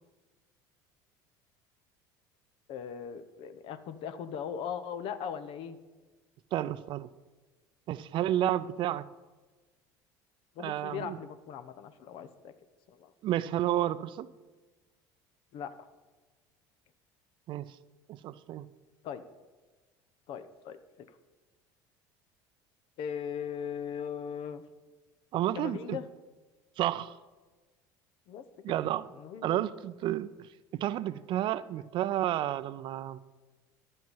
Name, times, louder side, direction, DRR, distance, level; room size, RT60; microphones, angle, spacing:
voice 1, 2.7-5.8 10.5-12.5 12.9-13.1 15.5-15.9 19.0-19.2 20.3-21.2 23.0-24.6 25.5-26.0 28.3-28.8 29.1-29.6, left 8 dB, 60° left, 10 dB, 0.9 m, -39 dB
voice 2, 6.5-7.1 7.9-9.1 10.6-11.2 13.2-14.3 17.5-17.7 18.1-18.7 25.3-26.0 26.8-27.1 28.6-29.1 29.4-33.2, right 12 dB, 55° right, 15 dB, 0.5 m, -31 dB
11.0 x 7.7 x 5.5 m, 1.3 s
supercardioid pair, 85°, 10 cm